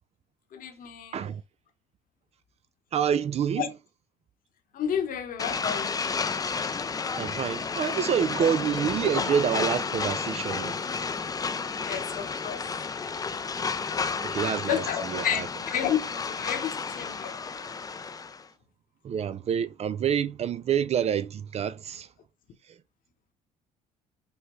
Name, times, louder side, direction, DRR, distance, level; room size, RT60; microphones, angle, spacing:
voice 1, 0.5-1.3 3.6-3.7 4.7-6.0 11.6-12.6 14.7-17.6, left 9 dB, 55° left, 1.0 m, -31 dB
voice 2, 2.9-3.7 7.2-10.8 14.2-15.5 19.0-22.1, right 8 dB, 40° right, 0.4 m, -27 dB
sound 1, 5.4-18.4, left 5 dB, 20° left, 0.4 m, -31 dB
5.5 x 2.1 x 3.1 m
supercardioid pair, 70°, 17 cm